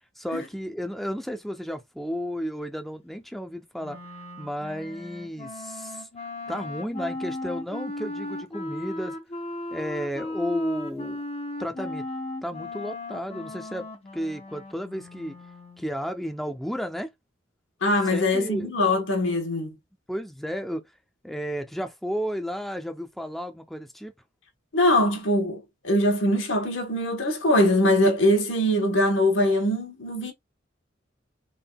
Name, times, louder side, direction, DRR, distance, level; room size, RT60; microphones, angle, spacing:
voice 1, 0.2-4.0 4.4-6.1 6.5-9.2 9.7-11.2 11.6-12.0 12.4-15.4 15.8-17.1 18.1-18.7 20.1-20.8 21.2-24.1, equal, ahead, 0.5 m, -32 dB
Wind instrument woodwind instrument, 3.8-15.9, left 2 dB, 30° left, 0.8 m, -36 dB
voice 2, 17.8-19.7 24.7-30.3, left 1 dB, 70° left, 1.1 m, -22 dB
3.7 x 3.6 x 2.2 m
head